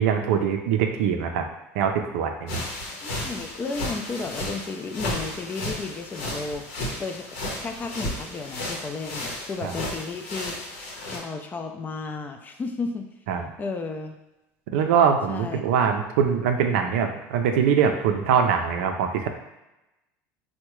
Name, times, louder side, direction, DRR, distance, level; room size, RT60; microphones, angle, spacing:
voice 1, 0.0-1.5 1.8-2.6 9.6-9.7 13.3-13.5 14.7-19.3, right 7 dB, 85° right, 5 dB, 0.4 m, -23 dB
sound 1, 2.5-11.2, left 1 dB, 80° left, 0.8 m, -33 dB
voice 2, 3.0-6.6 7.0-7.3 7.6-10.6 11.1-13.1 13.6-14.2 15.3-15.6, left 4 dB, 25° left, 5 dB, 0.4 m, -33 dB
3.5 x 2.1 x 3.0 m, 0.94 s
supercardioid pair, 105°, 7 cm